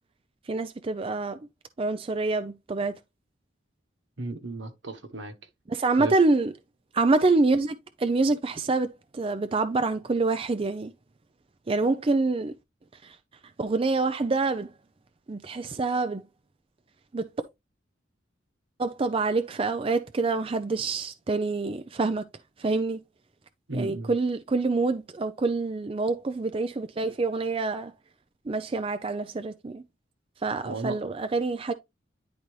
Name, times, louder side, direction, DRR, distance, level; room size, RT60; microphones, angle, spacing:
voice 1, 0.5-1.4 1.8-2.9 5.7-6.5 6.9-10.9 11.7-12.5 13.0-13.2 13.6-14.7 15.3-16.2 17.1-17.3 18.8-22.2 22.6-23.0 23.7-27.9 28.5-29.8 30.4-31.7, right 3 dB, 30° right, 0.4 m, -26 dB
voice 2, 4.2-5.3 6.0-6.1 23.7-24.1 30.6-31.0, right 2 dB, 70° right, 1.2 m, -34 dB
10.5 x 4.1 x 3.1 m
head